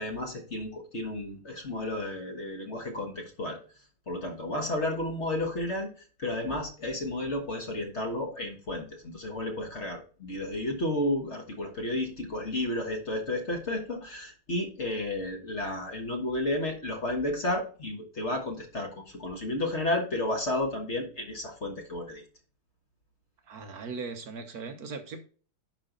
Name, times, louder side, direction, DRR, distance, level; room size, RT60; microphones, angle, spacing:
voice 1, 0.0-3.6 4.1-22.2, left 1 dB, 35° left, 1.5 m, -32 dB
voice 2, 23.5-25.2, right 4 dB, 55° right, 1.2 m, -39 dB
10.5 x 5.0 x 3.9 m
omnidirectional pair, 2.3 m